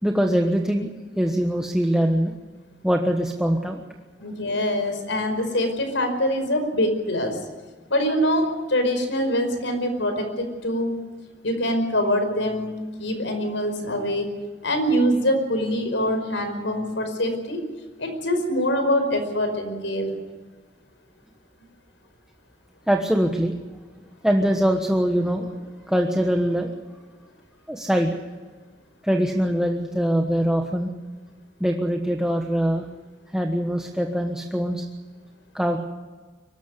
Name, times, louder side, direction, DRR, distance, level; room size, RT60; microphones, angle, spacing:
voice 1, 0.0-2.3 2.8-3.8 22.9-23.5 24.2-25.5 25.9-26.7 27.7-28.2 29.0-30.9 31.6-32.8 33.3-34.9 35.5-35.8, equal, 5° right, 2 dB, 1.3 m, -22 dB
voice 2, 4.2-7.4 7.9-11.0 11.4-14.3 14.6-17.6 18.0-20.2, equal, 90° left, 6 dB, 5.2 m, -24 dB
24.0 x 13.5 x 9.8 m, 1.4 s
head